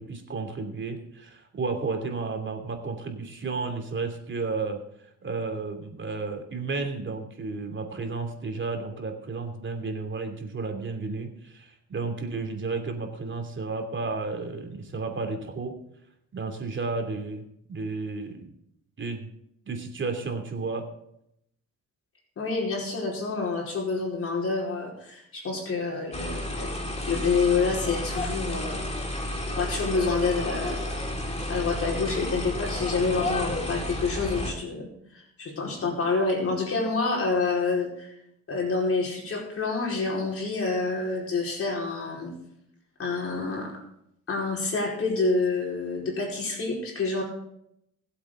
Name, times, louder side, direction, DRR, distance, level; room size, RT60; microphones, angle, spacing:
voice 1, 0.0-4.8 5.2-15.7 16.3-17.4 17.7-18.5 19.0-19.3 19.7-20.9, right 4 dB, 40° right, 4 dB, 2.9 m, -32 dB
voice 2, 22.4-26.7 27.1-29.0 29.6-31.0 31.5-38.1 38.5-42.3 43.0-43.7 44.3-47.2, left 4 dB, 50° left, -2 dB, 4.7 m, -28 dB
sound 1, 26.1-34.5, left 1 dB, 20° left, 2.7 m, -31 dB
21.5 x 8.0 x 3.8 m, 0.75 s
cardioid pair, 90°, 30 cm